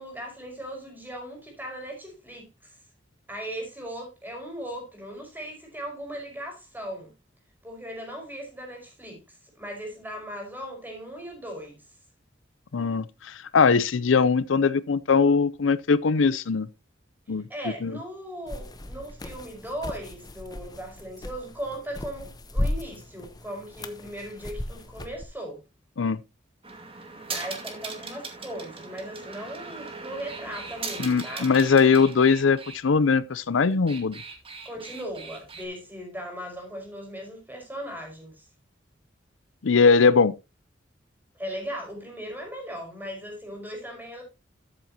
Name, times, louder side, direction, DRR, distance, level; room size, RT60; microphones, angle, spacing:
voice 1, 0.0-2.8 3.3-7.1 7.6-11.9 17.5-25.6 27.3-31.5 34.6-38.5 41.3-44.2, equal, 10° right, 5.0 m, -38 dB
voice 2, 12.7-16.7 17.3-17.5 17.8-18.0 26.0-26.2 31.0-34.2 39.6-40.3, left 5 dB, 85° left, 0.6 m, -21 dB
sound 1, 18.5-25.2, left 1 dB, 20° left, 1.0 m, -35 dB
sound 2, 26.6-32.8 33.7-35.7, right 4 dB, 30° right, 2.3 m, -39 dB
13.0 x 7.7 x 2.9 m
head